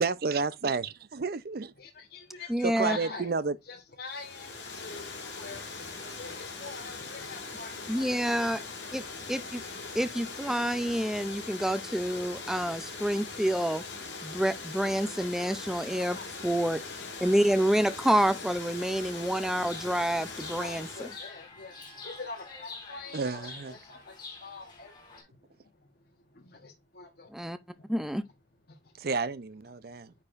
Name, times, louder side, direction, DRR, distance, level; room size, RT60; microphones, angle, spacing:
voice 1, 0.0-1.7 2.6-3.6 23.1-23.8 29.0-30.1, right 4 dB, 55° right, 0.5 m, -31 dB
voice 2, 1.8-3.3 3.7-8.5 15.9-16.3 20.6-23.4 23.7-25.3 26.3-27.3 27.7-27.8 28.7-28.8, left 4 dB, 60° left, 1.1 m, -45 dB
voice 3, 2.5-3.0 7.9-8.6 8.9-9.0 9.3-9.6 10.0-13.8 14.2-16.2 16.4-16.8 17.2-21.1 27.3-27.6 27.9-28.2, equal, ahead, 0.4 m, -28 dB
Water, 4.1-21.3, left 4 dB, 75° left, 3.2 m, -41 dB
Chirp tweet, 19.4-25.2, left 4 dB, 25° left, 3.4 m, -47 dB
9.6 x 4.4 x 2.5 m
head